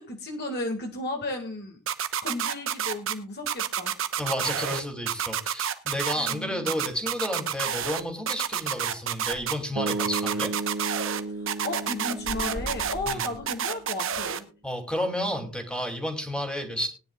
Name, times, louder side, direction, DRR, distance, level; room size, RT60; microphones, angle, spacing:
voice 1, 0.0-1.8 2.2-4.0 6.2-6.7 11.3-14.5, left 2 dB, 45° left, 3 dB, 1.9 m, -34 dB
sound 1, 1.9-3.1 3.5-4.8 5.1-6.3 6.7-8.0 8.3-9.5 9.9-11.2 11.5-14.4, right 9 dB, 60° right, 1.0 m, -28 dB
voice 2, 4.2-10.5 13.1-13.2 14.6-16.9, equal, 5° left, 4 dB, 2.6 m, -31 dB
sound 2, 9.4-9.5 10.0-10.1 10.5-11.3 11.6-13.8, left 1 dB, 80° left, 4.7 m, -40 dB
sound 3, 9.8-13.9, right 3 dB, 85° right, 2.1 m, -34 dB
20.5 x 10.0 x 2.3 m, 0.35 s
head